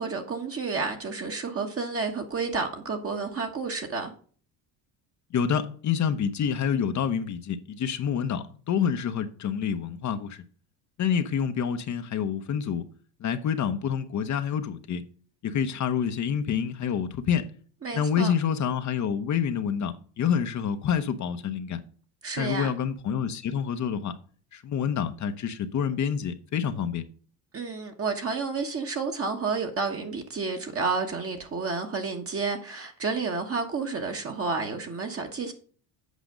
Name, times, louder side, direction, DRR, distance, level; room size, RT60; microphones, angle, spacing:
voice 1, 0.0-4.1 17.8-18.3 22.2-22.7 27.5-35.5, right 4 dB, 30° right, 1.4 m, -30 dB
voice 2, 5.3-10.4 11.0-12.9 13.2-15.0 15.4-17.5 17.9-21.8 22.4-24.2 24.5-27.0, left 7 dB, 40° left, 0.9 m, -27 dB
8.3 x 5.0 x 5.1 m
supercardioid pair, 105°, 42 cm